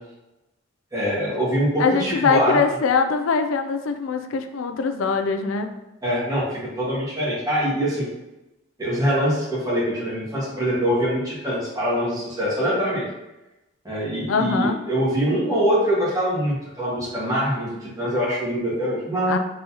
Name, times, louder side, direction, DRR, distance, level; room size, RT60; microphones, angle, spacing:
voice 1, 0.9-2.6 6.0-8.1 8.8-13.0 13.8-19.4, equal, 15° right, -7 dB, 1.5 m, -24 dB
voice 2, 1.8-5.7 14.3-14.8 19.3-19.4, left 5 dB, 75° left, 7 dB, 0.4 m, -22 dB
4.0 x 3.9 x 2.8 m, 0.98 s
head